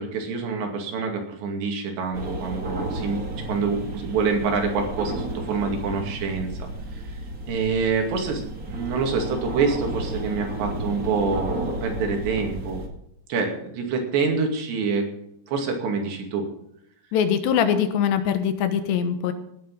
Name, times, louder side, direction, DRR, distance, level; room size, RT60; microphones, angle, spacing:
voice 1, 0.0-6.5 7.0-7.1 7.5-12.8 13.3-15.1 15.5-16.4, right 5 dB, 80° right, 3 dB, 4.5 m, -26 dB
sound 1, 2.1-12.9, right 1 dB, 45° right, 1.1 m, -33 dB
voice 2, 17.1-19.3, left 8 dB, 85° left, 9 dB, 3.4 m, -22 dB
18.0 x 8.4 x 5.5 m, 0.76 s
omnidirectional pair, 5.0 m